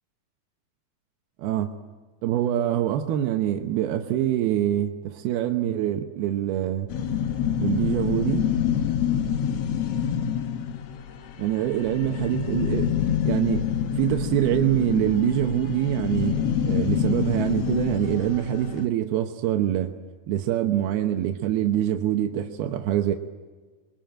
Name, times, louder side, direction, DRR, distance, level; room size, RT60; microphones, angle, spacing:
voice 1, 1.4-1.7 2.2-6.9 7.6-8.5 11.4-12.9 13.2-13.7 13.9-19.9 20.3-23.1, right 12 dB, 85° right, 5 dB, 3.0 m, -24 dB
sound 1, 6.9-18.8, left 8 dB, 65° left, 1.5 m, -27 dB
26.0 x 23.0 x 9.1 m, 1.4 s
omnidirectional pair, 4.3 m